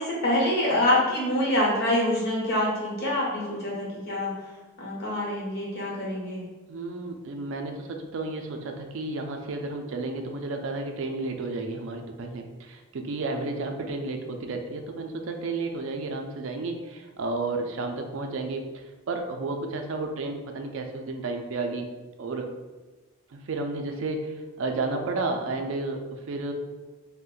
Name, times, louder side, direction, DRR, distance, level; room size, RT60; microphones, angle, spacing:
voice 1, 0.0-4.3 4.8-6.5, left 1 dB, 50° left, -5 dB, 0.9 m, -26 dB
voice 2, 6.7-21.9 22.2-22.5 23.3-26.5, right 3 dB, 60° right, 4 dB, 0.4 m, -32 dB
2.4 x 2.1 x 3.7 m, 1.2 s
head